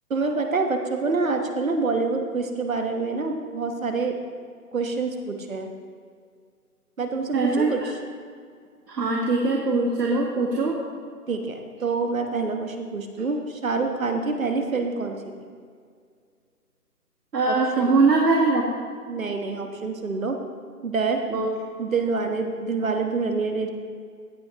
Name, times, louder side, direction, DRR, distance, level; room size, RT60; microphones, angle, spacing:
voice 1, 0.1-4.2 4.7-5.7 7.0-7.8 11.3-15.3 17.5-17.9 19.1-20.4 20.8-21.2 21.8-23.7, right 4 dB, 55° right, 4 dB, 1.3 m, -26 dB
voice 2, 7.3-7.7 8.9-10.8 17.3-18.6 21.3-21.5, right 3 dB, 85° right, -2 dB, 1.8 m, -21 dB
16.0 x 7.4 x 2.9 m, 2.1 s
hypercardioid pair, 180°, 47 cm